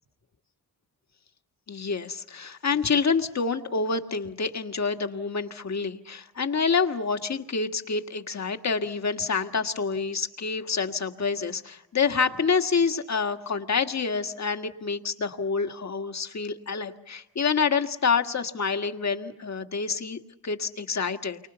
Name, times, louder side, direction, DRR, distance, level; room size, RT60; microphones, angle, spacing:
voice 1, 1.7-21.4, left 5 dB, 45° left, 7 dB, 1.8 m, -27 dB
29.5 x 24.5 x 6.9 m, 0.85 s
wide cardioid pair, 100°, 37 cm